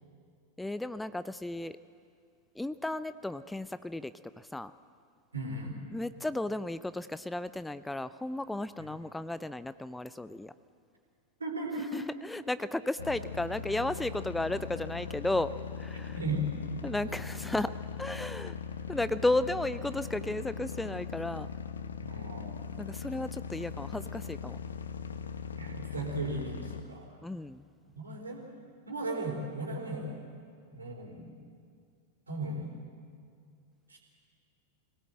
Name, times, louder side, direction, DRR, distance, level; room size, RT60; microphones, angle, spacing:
voice 1, 0.6-1.8 2.6-4.7 5.9-10.5 11.9-15.5 15.8-16.2 16.8-17.7 18.0-18.6 18.9-21.5 22.8-24.6 27.2-27.6, left 2 dB, 5° left, 15 dB, 0.5 m, -34 dB
voice 2, 5.3-5.8 8.8-8.9 11.4-12.1 15.9-16.5 22.0-22.6 25.6-27.2 28.0-28.5 28.9-30.2 30.7-31.3 32.3-32.7 33.9-34.0, right 2 dB, 75° right, 1 dB, 3.9 m, -36 dB
sound 1, 13.0-26.8, left 6 dB, 70° left, 1.0 m, -40 dB
23.5 x 17.5 x 7.8 m, 2.3 s
figure-of-eight pair, 90°, 0 cm